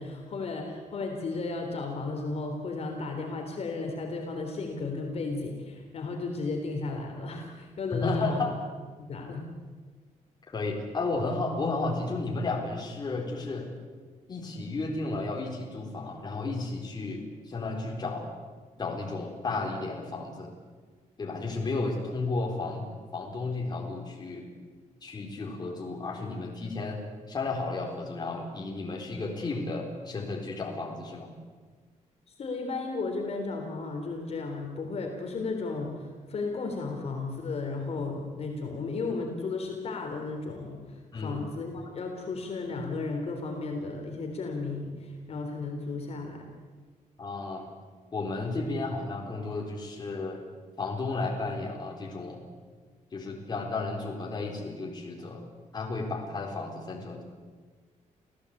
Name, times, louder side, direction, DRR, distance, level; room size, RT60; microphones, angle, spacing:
voice 1, 0.0-8.4 9.0-9.5 32.4-46.4, left 3 dB, 50° left, 2 dB, 3.6 m, -34 dB
voice 2, 7.9-8.5 10.5-13.7 14.3-18.3 18.8-20.5 21.2-22.9 23.1-24.5 25.0-27.0 27.3-31.3 41.1-41.4 47.2-47.7 48.1-50.4 50.8-52.5 53.1-55.4 55.7-57.2, left 3 dB, 30° left, 0 dB, 4.0 m, -33 dB
28.0 x 16.0 x 8.6 m, 1.5 s
wide cardioid pair, 165°, 13 cm